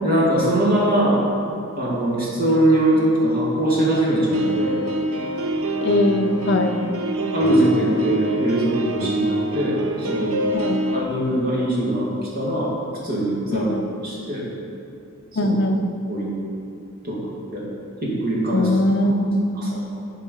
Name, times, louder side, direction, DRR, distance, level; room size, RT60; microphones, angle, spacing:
voice 1, 0.0-1.2 1.5-4.8 7.3-10.4 10.9-12.1 12.4-12.7 13.0-13.7 14.0-14.5 15.3-15.5 16.1-16.3 17.0-17.2 17.5-17.7 18.0-18.7 19.6-19.8, right 1 dB, 40° right, -5 dB, 1.9 m, -21 dB
sound 1, 4.3-11.0, right 1 dB, 75° right, 0.6 m, -25 dB
voice 2, 5.8-6.8 10.5-10.9 13.5-13.8 15.4-15.8 18.5-19.7, left 1 dB, 50° left, 4 dB, 0.5 m, -21 dB
8.5 x 4.8 x 5.3 m, 2.6 s
head